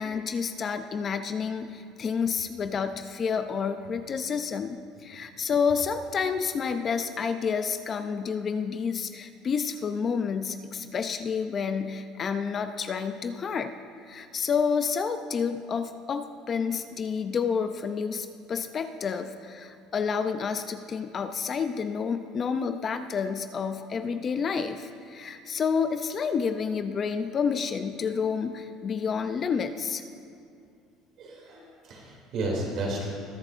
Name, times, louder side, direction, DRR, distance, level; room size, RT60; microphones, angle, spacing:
voice 1, 0.0-4.8 5.0-13.7 14.1-30.0, left 6 dB, 30° left, 8 dB, 0.4 m, -29 dB
voice 2, 31.2-33.1, right 2 dB, 55° right, -2 dB, 2.6 m, -32 dB
21.0 x 7.3 x 2.5 m, 2.4 s
cardioid pair, 145°, 0 cm